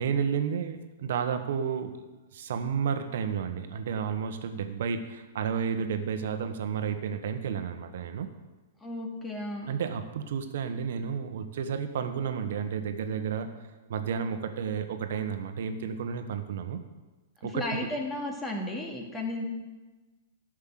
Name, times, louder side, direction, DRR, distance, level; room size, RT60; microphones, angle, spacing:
voice 1, 0.0-2.0 2.3-8.3 9.7-13.5 13.9-16.8 17.4-17.9, right 7 dB, 65° right, 8 dB, 1.3 m, -31 dB
voice 2, 8.8-9.7 17.5-19.4, left 2 dB, 15° left, 0 dB, 2.4 m, -34 dB
12.0 x 6.4 x 7.7 m, 1.2 s
hypercardioid pair, 115°, 0 cm